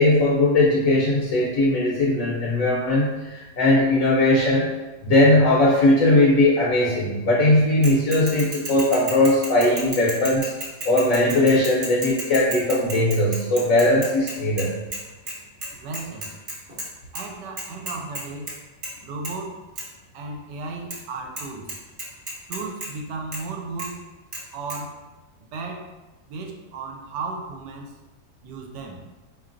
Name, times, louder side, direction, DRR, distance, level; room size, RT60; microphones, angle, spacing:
voice 1, 0.0-4.7 5.0-10.5 10.8-14.7, left 1 dB, 65° left, -5 dB, 0.9 m, -19 dB
Bicycle / Mechanisms, 7.8-15.0 15.3-15.4 15.6-16.9 17.1-17.2 17.6-18.5 18.8-19.0 19.2-19.3 19.8-19.9 20.9-21.0 21.4-21.5 21.7-22.9 23.3-23.4 23.8-23.9 24.3-24.4 24.7-24.8, right 1 dB, 45° right, 0.8 m, -33 dB
voice 2, 15.8-16.3 17.1-18.5 19.0-19.6 20.1-21.8 22.5-24.0 24.5-25.0 25.4-25.9 26.3-27.9 28.4-29.0, right 3 dB, 85° right, 2 dB, 1.2 m, -34 dB
4.4 x 2.9 x 2.4 m, 1.1 s
omnidirectional pair, 1.8 m